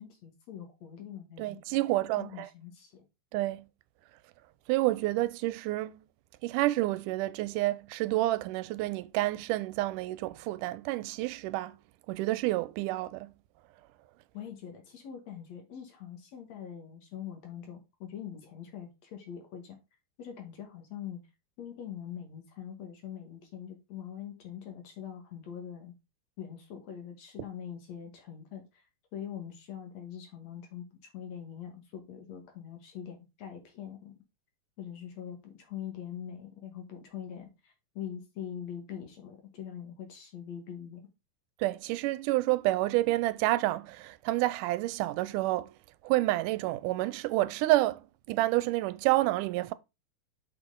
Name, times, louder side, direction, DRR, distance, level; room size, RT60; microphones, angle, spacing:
voice 1, 0.0-1.6 2.2-3.0 14.3-19.8 20.2-21.2 21.6-25.9 26.4-28.8 29.1-30.8 31.1-34.1 34.8-41.0, left 9 dB, 60° left, 2.5 m, -43 dB
voice 2, 1.4-2.5 3.3-3.7 4.7-6.0 6.4-11.8 12.1-13.3 41.6-45.7 46.0-48.0 48.3-49.7, right 18 dB, 85° right, 2.1 m, -29 dB
6.5 x 5.9 x 3.7 m
omnidirectional pair, 3.7 m